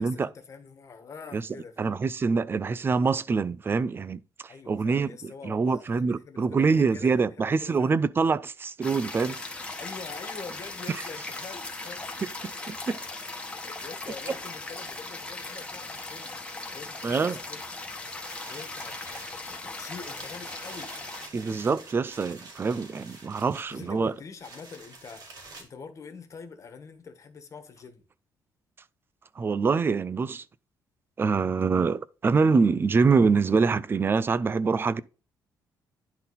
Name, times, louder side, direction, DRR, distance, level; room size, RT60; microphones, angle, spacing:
voice 1, 0.0-2.0 4.5-8.0 9.8-12.3 13.5-17.6 18.5-21.8 23.7-28.0, left 5 dB, 40° left, 1.4 m, -45 dB
voice 2, 1.8-4.2 4.7-5.1 5.4-9.4 12.4-13.0 17.0-17.4 21.3-24.1 29.4-30.4 31.2-35.0, right 4 dB, 30° right, 0.5 m, -25 dB
sound 1, 8.8-21.3, left 2 dB, 15° left, 1.4 m, -38 dB
sound 2, 18.2-25.6, right 3 dB, 60° right, 3.6 m, -47 dB
10.5 x 3.9 x 4.1 m
cardioid pair, 120°, 8 cm